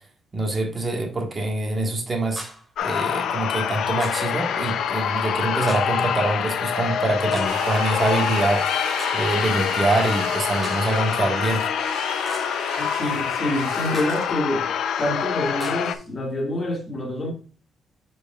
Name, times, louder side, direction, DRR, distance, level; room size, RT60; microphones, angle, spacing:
voice 1, 0.3-2.5 2.8-8.7 9.1-11.7, right 2 dB, 30° right, 1.5 m, -25 dB
sound 1, 2.3-2.7 4.0-4.4 5.7-6.0 7.3-7.7 9.0-9.3 10.6-11.0 12.3-12.6 13.9-14.3 15.6-16.0, right 1 dB, 15° right, 2.4 m, -39 dB
sound 2, 2.8-16.0, left 8 dB, 70° left, 0.6 m, -25 dB
sound 3, 7.5-14.3, right 8 dB, 90° right, 0.7 m, -36 dB
voice 2, 12.8-14.7 15.0-17.3, left 1 dB, 30° left, 2.4 m, -27 dB
8.3 x 4.7 x 2.4 m
cardioid pair, 90°, 0 cm